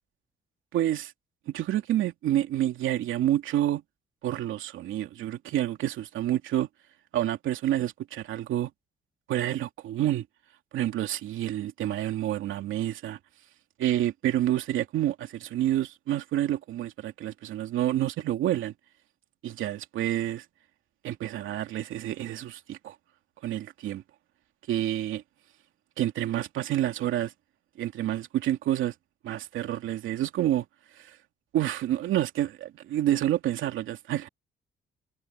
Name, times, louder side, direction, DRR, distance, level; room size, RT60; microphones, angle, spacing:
voice 1, 0.7-1.1 1.5-3.8 4.2-6.7 7.1-8.7 9.3-10.2 10.7-13.2 13.8-18.7 19.4-20.4 21.0-22.9 23.4-24.0 24.7-25.2 26.0-27.3 27.8-28.9 29.2-30.6 31.0-31.1 31.5-34.3, right 12 dB, 80° right, 2.6 m, -28 dB
cardioid pair, 90°, 20 cm